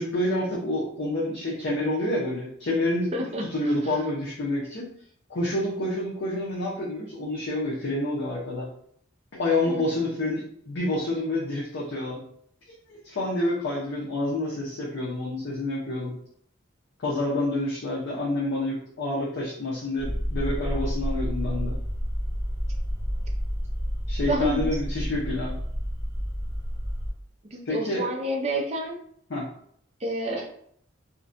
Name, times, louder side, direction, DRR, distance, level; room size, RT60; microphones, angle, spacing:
voice 1, 0.0-4.9 5.3-8.7 9.3-12.2 12.9-16.1 17.0-21.8 24.1-25.6 27.7-28.1 29.3-29.5, left 1 dB, 60° left, -6 dB, 0.6 m, -28 dB
voice 2, 3.1-3.4 9.7-9.9 24.3-24.7 27.5-29.0 30.0-30.5, equal, 30° right, 0 dB, 0.4 m, -29 dB
sound 1, 20.0-27.1, equal, 80° left, 1.0 m, -29 dB
2.5 x 2.1 x 2.5 m, 0.64 s
head